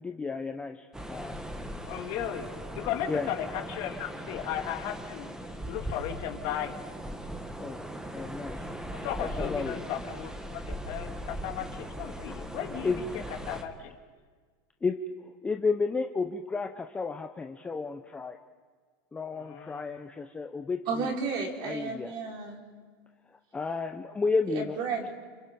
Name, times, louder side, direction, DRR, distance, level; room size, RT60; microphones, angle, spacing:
voice 1, 0.0-1.4 3.1-3.3 7.6-8.7 9.2-9.8 12.3-12.4 12.8-13.3 14.8-18.4 19.1-21.1 21.6-22.1 23.5-24.8, left 4 dB, 10° left, 5 dB, 0.8 m, -32 dB
sound 1, 0.9-13.6, equal, 5° right, 1.7 m, -39 dB
voice 2, 1.9-2.5 2.7-5.3 5.7-6.8 8.9-10.3 10.6-12.9 13.5-14.0 19.3-19.8, left 10 dB, 55° left, 4 dB, 2.4 m, -35 dB
voice 3, 20.9-22.6 24.5-25.1, right 4 dB, 45° right, 0 dB, 4.5 m, -32 dB
29.5 x 27.0 x 5.3 m, 1.5 s
supercardioid pair, 150°, 11 cm